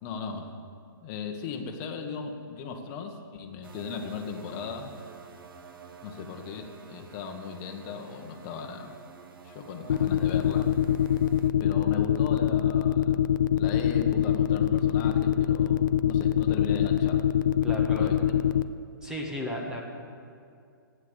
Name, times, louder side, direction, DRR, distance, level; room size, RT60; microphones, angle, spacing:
voice 1, 0.0-0.5 1.0-4.9 6.0-9.0 9.4-10.7 11.6-13.2 13.6-17.2 17.9-18.2, left 5 dB, 25° left, 3 dB, 1.4 m, -37 dB
sound 1, 3.6-11.5, right 6 dB, 70° right, 1.3 m, -49 dB
sound 2, 9.9-18.6, left 10 dB, 60° left, 0.6 m, -23 dB
voice 2, 17.6-18.1 19.0-19.8, equal, 5° right, -1 dB, 1.5 m, -34 dB
14.5 x 9.5 x 8.2 m, 2.4 s
hypercardioid pair, 155°, 12 cm